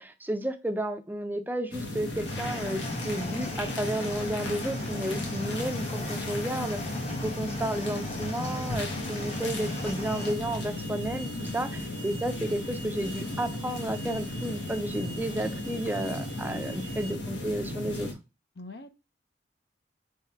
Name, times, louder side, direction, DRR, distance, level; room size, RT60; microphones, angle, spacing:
voice 1, 0.0-18.1, right 1 dB, 10° right, 0.4 m, -32 dB
sound 1, 1.7-18.1, left 1 dB, 85° left, 1.2 m, -35 dB
sound 2, 2.3-10.3, left 1 dB, 35° left, 1.0 m, -38 dB
Alarm, 9.3-17.1, right 3 dB, 90° right, 0.8 m, -47 dB
voice 2, 18.5-19.0, left 2 dB, 65° left, 0.7 m, -44 dB
3.7 x 3.3 x 4.3 m
head